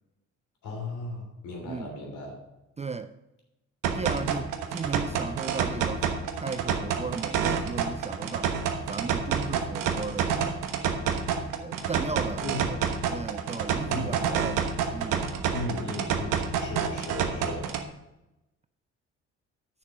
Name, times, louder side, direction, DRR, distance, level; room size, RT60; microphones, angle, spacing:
voice 1, 0.6-2.4 12.4-12.6 13.9-14.2 15.5-17.7, left 2 dB, 60° left, 3.3 m, -36 dB
voice 2, 2.8-3.1 3.9-6.1 6.3-8.6 8.9-10.6 11.6-12.8 13.1-15.2, right 4 dB, 20° right, 0.5 m, -36 dB
sound 1, 3.8-17.8, right 7 dB, 65° right, 1.1 m, -29 dB
9.0 x 6.7 x 4.9 m
hypercardioid pair, 50°, 34 cm